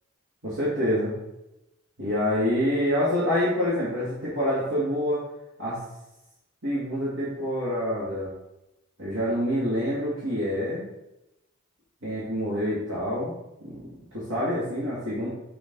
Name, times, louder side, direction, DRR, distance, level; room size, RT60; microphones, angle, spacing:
voice 1, 0.4-1.1 2.0-5.3 5.6-5.8 6.6-8.3 9.0-10.8 12.0-13.8 14.1-15.3, equal, 70° right, -10 dB, 2.3 m, -26 dB
7.0 x 4.9 x 3.9 m, 0.92 s
head